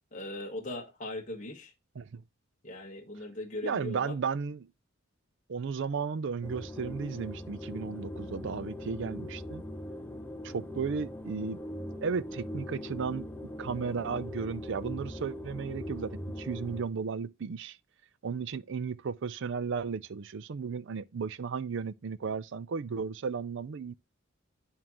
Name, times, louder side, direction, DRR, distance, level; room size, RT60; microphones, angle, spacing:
voice 1, 0.1-1.7 2.6-4.1, left 1 dB, 40° left, 1.3 m, -39 dB
voice 2, 3.6-4.7 5.5-9.6 10.4-11.6 12.0-13.3 13.6-17.8 18.2-23.9, right 5 dB, 65° right, 0.5 m, -34 dB
sound 1, 6.4-16.8, left 1 dB, 10° left, 0.6 m, -41 dB
11.0 x 3.7 x 3.0 m
head